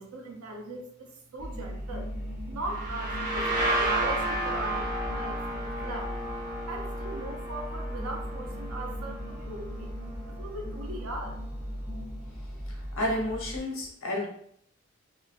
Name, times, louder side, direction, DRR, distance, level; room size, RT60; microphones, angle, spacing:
voice 1, 0.0-2.1 2.5-6.2 6.7-9.9 10.3-11.4, right 2 dB, 90° right, 2 dB, 0.6 m, -39 dB
sound 1, 1.4-13.6, equal, 10° right, 0.4 m, -38 dB
sound 2, 2.7-10.2, right 1 dB, 40° right, 0.8 m, -32 dB
voice 2, 12.7-14.3, left 1 dB, 70° left, -2 dB, 1.0 m, -31 dB
2.7 x 2.4 x 2.4 m, 0.66 s
head